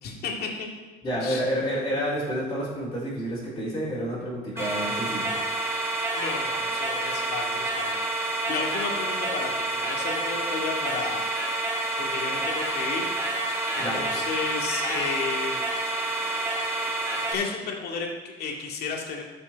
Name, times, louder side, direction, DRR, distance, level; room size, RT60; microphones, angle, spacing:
voice 1, 0.0-0.7 1.2-1.4 6.1-11.2 12.0-13.0 13.7-15.6 17.3-19.2, left 5 dB, 70° left, 0 dB, 2.2 m, -33 dB
voice 2, 1.0-5.9 13.8-14.1, equal, 25° left, -10 dB, 4.0 m, -30 dB
sound 1, 4.6-17.3, right 2 dB, 15° right, 3.2 m, -28 dB
13.5 x 6.9 x 4.6 m, 1.3 s
cardioid pair, 110°, 17 cm